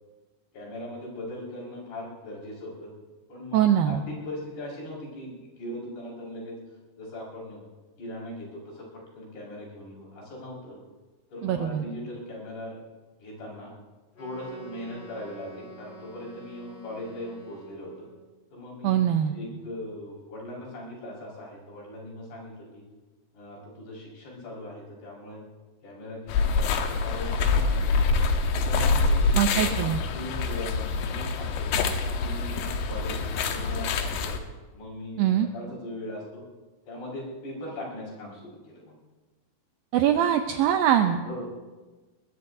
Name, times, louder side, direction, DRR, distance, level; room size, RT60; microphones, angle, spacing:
voice 1, 0.5-2.9 3.3-6.5 7.0-7.6 8.0-10.8 11.3-12.8 13.2-13.7 14.2-18.1 18.5-22.8 23.3-25.4 25.8-27.8 28.6-29.8 30.1-31.8 32.2-34.4 34.7-36.4 36.9-39.0 41.2-41.4, left 1 dB, 70° left, -4 dB, 7.2 m, -39 dB
voice 2, 3.5-4.0 11.4-11.8 18.8-19.4 29.3-30.0 35.2-35.5 39.9-41.2, right 10 dB, 75° right, 6 dB, 2.2 m, -22 dB
Wind instrument woodwind instrument, 14.1-18.2, right 1 dB, 35° left, 3.4 m, -48 dB
sound 1, 26.3-34.4, left 4 dB, 85° left, 3.3 m, -25 dB
22.5 x 22.0 x 2.7 m, 1.3 s
omnidirectional pair, 4.8 m